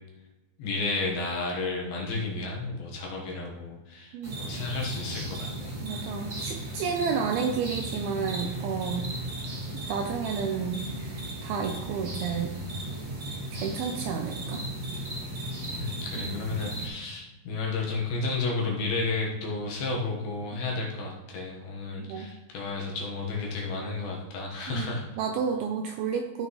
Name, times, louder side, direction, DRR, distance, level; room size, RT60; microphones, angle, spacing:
voice 1, 0.6-5.7 15.8-25.0, left 3 dB, 70° left, -2 dB, 3.0 m, -32 dB
sound 1, 4.2-16.9, right 1 dB, 40° right, 1.3 m, -36 dB
voice 2, 5.8-9.1 9.9-12.6 13.5-14.6 16.2-16.4 20.5-20.6 22.0-22.3 24.7-26.5, right 6 dB, 80° right, 3 dB, 2.3 m, -31 dB
14.0 x 6.1 x 3.1 m, 1.1 s
omnidirectional pair, 4.8 m